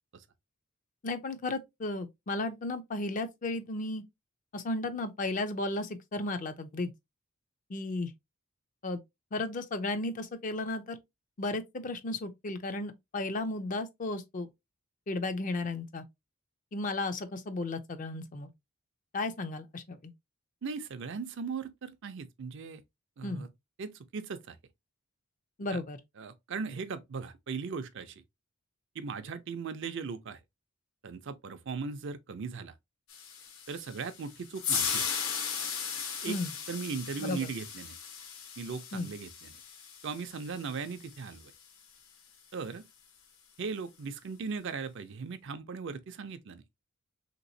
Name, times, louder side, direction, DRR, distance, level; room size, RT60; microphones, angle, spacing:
voice 1, 1.0-4.0 4.5-6.9 7.7-8.1 8.8-9.0 9.3-11.0 11.4-14.5 15.1-16.0 16.7-18.5 19.1-20.1 23.2-23.5 25.6-26.0 36.3-36.5 37.2-37.4 38.9-39.1, left 2 dB, 35° left, 0.4 m, -34 dB
voice 2, 20.6-22.8 23.2-23.5 23.8-24.6 25.7-25.8 26.2-28.2 29.0-30.4 31.0-32.7 33.7-35.0 36.2-36.4 36.7-38.0 38.6-39.5 40.0-41.5 42.5-42.8 43.6-46.6, right 5 dB, 55° right, 0.4 m, -38 dB
sound 1, 33.1-41.4, left 7 dB, 70° left, 0.8 m, -37 dB
3.4 x 2.9 x 2.6 m
head